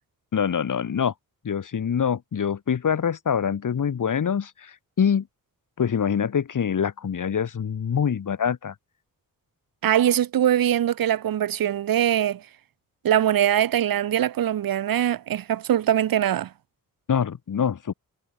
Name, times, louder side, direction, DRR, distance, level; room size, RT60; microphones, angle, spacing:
voice 1, 0.3-1.1 1.4-5.3 5.8-8.7 17.1-17.9, left 7 dB, 65° left, 5.1 m, -25 dB
voice 2, 9.8-12.4 13.0-16.5, right 11 dB, 85° right, 1.1 m, -22 dB
wide cardioid pair, 135°, 34 cm